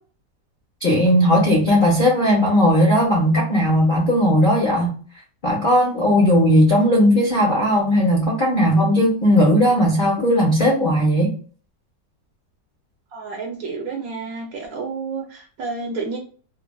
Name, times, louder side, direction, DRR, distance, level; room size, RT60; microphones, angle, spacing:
voice 1, 0.8-4.9 5.4-11.3, equal, 65° left, 0.5 m, -17 dB
voice 2, 13.1-16.2, right 4 dB, 70° right, 0.9 m, -30 dB
3.1 x 2.3 x 2.2 m
omnidirectional pair, 1.9 m